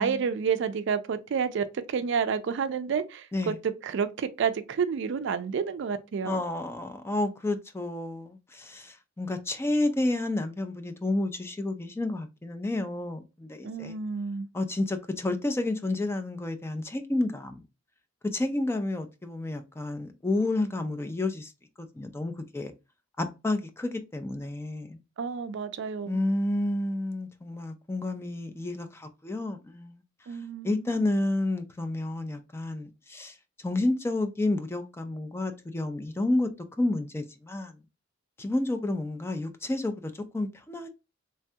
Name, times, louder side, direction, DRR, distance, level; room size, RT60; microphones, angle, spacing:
voice 1, 0.0-6.4 13.6-14.5 25.2-26.2 30.3-31.1, right 6 dB, 65° right, 0.4 m, -30 dB
voice 2, 6.2-13.9 14.5-17.6 18.2-21.5 21.8-22.7 23.2-25.0 26.1-30.0 30.6-33.3 33.6-36.5 36.8-37.8 38.4-40.9, left 2 dB, 15° left, 0.3 m, -30 dB
3.2 x 2.2 x 2.7 m
head